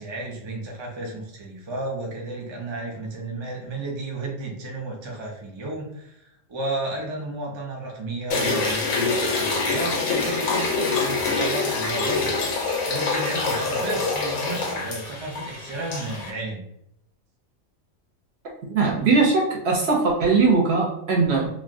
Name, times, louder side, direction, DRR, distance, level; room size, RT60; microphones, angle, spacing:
voice 1, 0.0-12.3 12.9-16.6, right 2 dB, 35° right, -2 dB, 0.4 m, -32 dB
sound 1, 8.3-16.3, left 3 dB, 80° left, 1.1 m, -25 dB
voice 2, 18.7-21.5, right 4 dB, 60° right, -2 dB, 0.7 m, -20 dB
3.2 x 2.3 x 2.5 m, 0.76 s
omnidirectional pair, 1.4 m